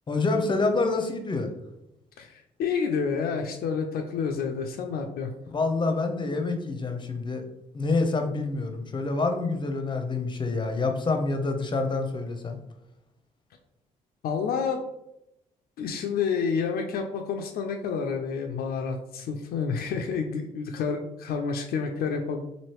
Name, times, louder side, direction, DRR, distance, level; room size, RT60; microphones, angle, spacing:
voice 1, 0.1-1.5 5.5-7.4 7.7-12.6, left 3 dB, 30° left, 6 dB, 0.6 m, -27 dB
voice 2, 2.2-5.3 14.2-14.8 15.8-22.4, left 5 dB, 70° left, 3 dB, 0.4 m, -29 dB
3.1 x 2.6 x 3.0 m, 0.86 s
supercardioid pair, 50°, 16 cm